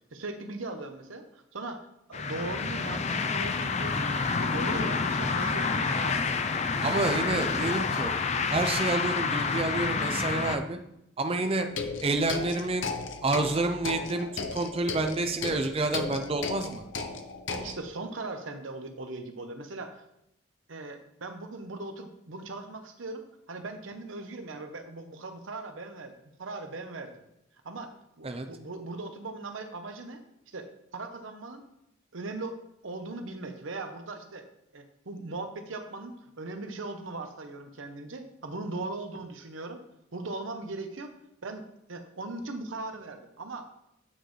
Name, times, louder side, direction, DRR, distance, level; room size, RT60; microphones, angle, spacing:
voice 1, 0.1-4.1 4.4-6.3 6.8-7.4 17.5-20.0 20.7-27.1 27.6-31.6 32.1-32.6 32.8-34.4 34.7-39.8 40.1-41.1 41.4-43.7, right 2 dB, 85° right, 7 dB, 0.9 m, -39 dB
sound 1, 2.1-10.6, left 4 dB, 35° left, 0.5 m, -28 dB
voice 2, 6.8-8.1 8.5-10.8 11.2-11.7 12.0-12.9 13.2-16.8 28.2-28.5, right 2 dB, 30° right, 6 dB, 0.5 m, -29 dB
sound 2, 11.7-17.8, left 4 dB, 75° left, 0.8 m, -36 dB
9.1 x 6.3 x 3.2 m, 0.81 s
head